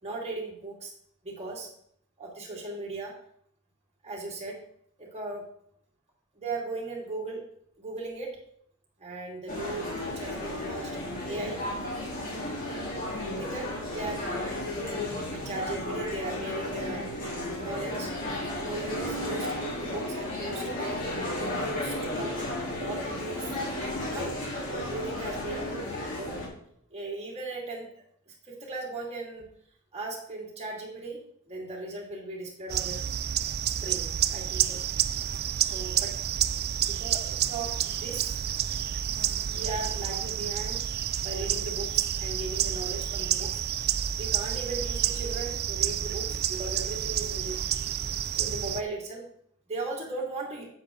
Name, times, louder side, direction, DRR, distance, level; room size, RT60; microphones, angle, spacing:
voice 1, 0.0-0.9 1.2-1.7 2.2-3.1 4.0-4.6 5.0-5.4 6.4-7.4 7.8-8.4 9.0-11.0 11.2-11.6 13.3-14.2 15.3-17.1 17.6-18.1 18.5-21.0 21.4-22.5 22.8-23.5 24.1-24.3 24.7-25.7 26.2-26.4 26.9-27.9 28.3-29.4 29.9-31.2 31.4-33.0 33.7-34.8 35.7-36.1 36.8-38.4 39.5-40.8 41.2-43.6 44.2-47.6 48.3-49.3 49.7-50.7, right 2 dB, 30° right, -2 dB, 2.6 m, -37 dB
sound 1, 9.5-26.5, left 1 dB, 40° left, 3.3 m, -33 dB
sound 2, 32.7-48.8, right 10 dB, 50° right, 0.4 m, -29 dB
8.9 x 7.5 x 3.8 m, 0.68 s
head